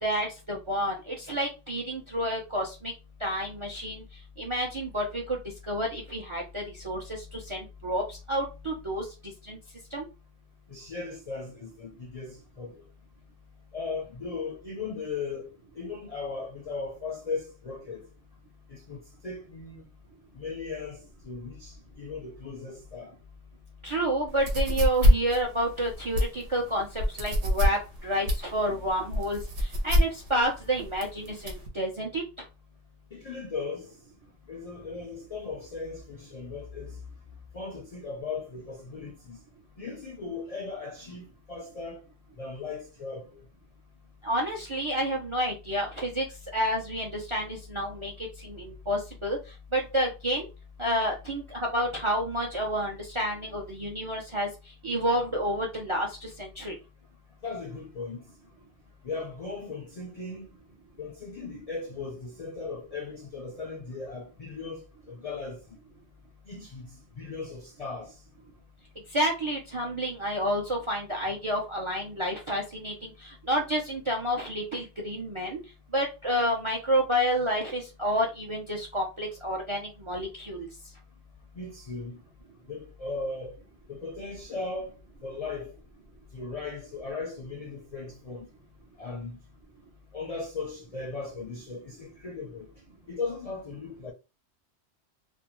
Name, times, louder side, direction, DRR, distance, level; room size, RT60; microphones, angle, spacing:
voice 1, 0.0-2.9 3.2-4.0 4.4-5.4 5.6-9.6 9.9-10.1 23.8-32.2 44.2-46.3 46.5-49.4 49.7-50.5 50.8-54.5 54.8-56.8 69.1-75.6 75.9-80.7, equal, 45° right, 0.4 m, -29 dB
voice 2, 10.7-12.8 13.7-18.1 18.7-19.9 20.3-23.1 33.1-33.9 34.5-37.0 37.5-39.4 39.8-42.0 42.4-43.4 57.4-58.3 59.0-60.5 61.0-65.6 66.5-68.2 81.5-82.2 82.7-83.6 83.9-84.9 85.2-85.7 86.3-88.5 89.0-89.4 90.1-92.7 93.1-94.1, left 4 dB, 50° left, 0.4 m, -37 dB
sound 1, 24.3-31.7, equal, 80° right, 1.0 m, -25 dB
2.6 x 2.1 x 2.9 m
omnidirectional pair, 1.2 m